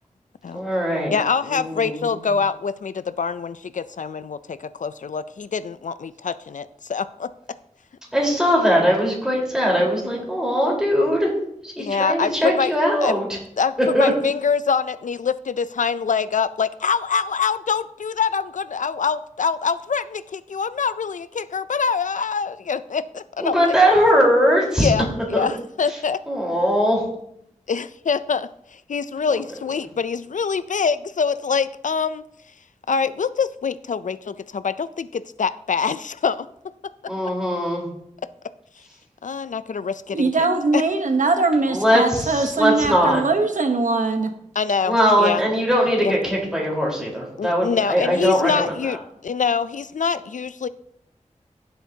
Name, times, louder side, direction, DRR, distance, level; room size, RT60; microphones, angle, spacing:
voice 1, 0.5-1.1 1.5-2.0 8.1-11.3 11.6-13.2 13.9-14.1 23.4-24.9 25.3-25.5 26.3-27.0 37.1-37.9 41.7-43.2 44.8-48.5, equal, 5° right, -3 dB, 4.0 m, -20 dB
voice 2, 1.1-7.3 11.8-12.7 13.0-13.2 13.6-23.0 23.4-23.8 24.8-25.0 25.3-26.2 27.7-32.2 32.9-36.5 39.2-40.3 40.7-40.8 44.6-45.4 46.0-46.1 47.4-50.7, left 6 dB, 75° left, 14 dB, 0.4 m, -24 dB
voice 3, 40.1-44.3, right 3 dB, 80° right, 6 dB, 1.0 m, -21 dB
14.5 x 7.9 x 2.8 m, 0.73 s
wide cardioid pair, 75°, 13 cm